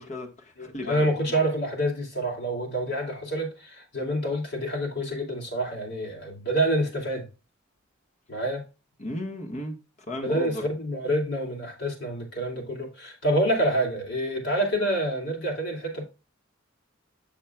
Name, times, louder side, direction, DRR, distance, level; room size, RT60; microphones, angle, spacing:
voice 1, 0.0-1.4 9.0-9.8 10.1-10.6, left 1 dB, 35° left, 1.4 m, -35 dB
voice 2, 0.6-7.3 8.3-8.6 10.2-16.0, right 1 dB, 60° left, 2.8 m, -27 dB
7.4 x 7.1 x 2.3 m
head